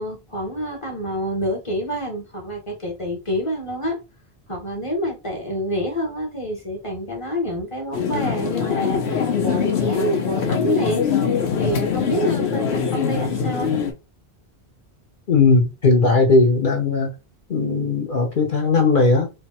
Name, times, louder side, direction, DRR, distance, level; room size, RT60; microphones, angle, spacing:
voice 1, 0.0-4.0 4.5-11.0 11.6-13.7, equal, 30° left, 1.2 m, -27 dB
sound 1, 7.9-13.9, left 6 dB, 85° left, 1.1 m, -22 dB
voice 2, 15.3-17.1 17.5-19.3, left 3 dB, 55° left, 1.1 m, -17 dB
3.3 x 2.3 x 4.1 m
omnidirectional pair, 1.1 m